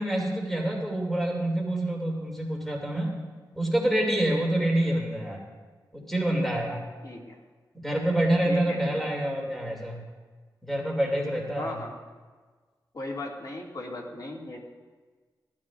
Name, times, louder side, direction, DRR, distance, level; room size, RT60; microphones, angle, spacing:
voice 1, 0.0-3.1 3.5-5.4 5.9-6.9 7.7-10.0 10.6-11.7, right 1 dB, 5° left, -2 dB, 2.6 m, -27 dB
voice 2, 7.0-7.4 8.5-8.9 11.6-12.0 12.9-14.6, left 2 dB, 50° left, -1 dB, 2.2 m, -37 dB
17.5 x 12.5 x 2.5 m, 1.4 s
wide cardioid pair, 95°, 8 cm